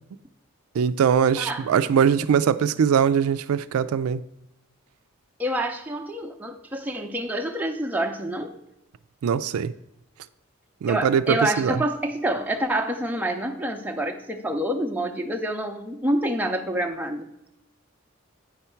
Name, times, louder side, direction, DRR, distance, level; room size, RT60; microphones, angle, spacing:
voice 1, 0.8-4.2 9.2-9.7 10.8-11.8, right 7 dB, 85° right, 0.3 m, -21 dB
voice 2, 1.4-1.7 5.4-8.5 10.9-17.3, right 1 dB, 10° right, 0.6 m, -27 dB
8.7 x 5.6 x 4.4 m
head